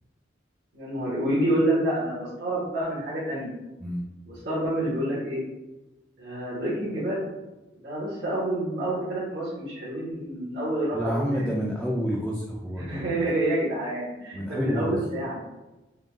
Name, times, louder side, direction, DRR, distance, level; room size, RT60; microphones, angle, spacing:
voice 1, 0.7-3.5 4.3-5.4 6.2-7.2 7.8-11.4 12.8-15.4, right 1 dB, 70° right, -10 dB, 1.2 m, -28 dB
voice 2, 10.9-13.1 14.3-15.0, equal, ahead, -4 dB, 0.3 m, -28 dB
3.7 x 2.2 x 3.5 m, 1.0 s
head